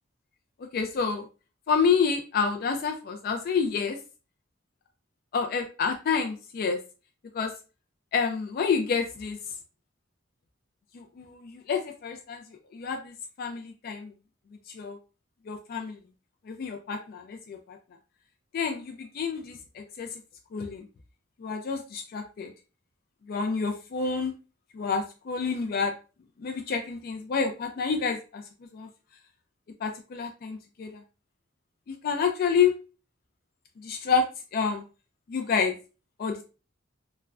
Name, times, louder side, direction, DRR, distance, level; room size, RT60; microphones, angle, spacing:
voice 1, 0.7-1.3 1.7-4.0 5.3-6.8 7.3-7.5 8.1-9.4 10.9-12.4 12.7-14.1 14.7-15.0 15.5-16.0 16.5-17.8 18.5-20.2 20.5-20.9 21.4-22.5 23.3-24.3 24.7-25.9 26.4-28.4 28.7-28.9 29.8-31.0 31.9-32.7 33.8-34.2 34.5-34.8 35.3-35.7 36.2-36.4, left 5 dB, 50° left, 4 dB, 0.3 m, -28 dB
3.3 x 2.1 x 2.4 m, 0.33 s
head